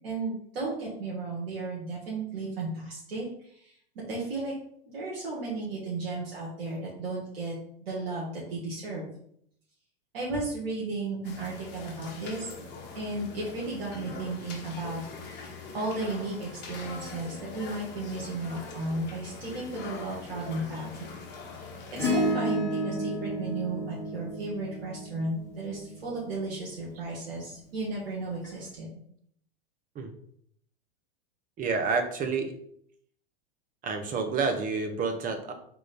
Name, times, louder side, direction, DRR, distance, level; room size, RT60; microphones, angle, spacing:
voice 1, 0.0-3.7 4.1-4.5 4.9-7.5 7.8-9.1 10.1-12.5 12.9-15.0 15.7-20.9 21.9-28.9, right 2 dB, 75° right, -5 dB, 1.5 m, -34 dB
sound 1, 11.2-22.3, left 4 dB, 35° left, 1.2 m, -43 dB
Acoustic guitar / Strum, 22.0-26.6 28.4-28.5, equal, 10° left, 1.3 m, -31 dB
voice 2, 31.6-32.5 33.8-35.5, right 4 dB, 30° right, 6 dB, 0.8 m, -29 dB
3.8 x 3.1 x 4.2 m, 0.67 s
hypercardioid pair, 110°, 30 cm